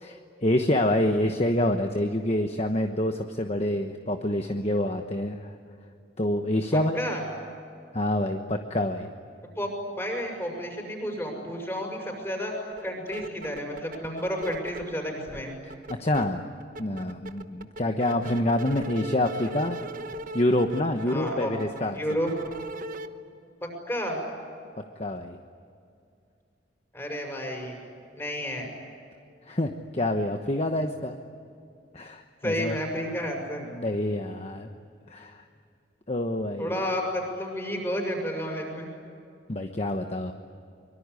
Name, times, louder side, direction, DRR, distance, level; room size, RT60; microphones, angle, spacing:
voice 1, 0.0-5.5 6.2-7.0 7.9-9.1 15.9-16.4 16.8-19.8 20.3-22.0 25.0-25.4 29.5-31.2 31.9-32.8 33.7-34.7 35.1-35.4 36.1-36.8 39.5-40.3, left 1 dB, 35° left, 5 dB, 1.1 m, -27 dB
voice 2, 9.9-12.5 12.8-15.5 21.1-21.5 22.0-22.3 23.6-24.2 26.9-27.8 28.1-28.7 32.4-33.6 36.6-38.9, equal, 15° left, 2 dB, 6.8 m, -31 dB
sound 1, 12.7-12.8 13.1-14.9 15.3-16.2 16.6-23.1, right 1 dB, 50° right, 1.1 m, -39 dB
24.5 x 23.0 x 9.8 m, 2.4 s
head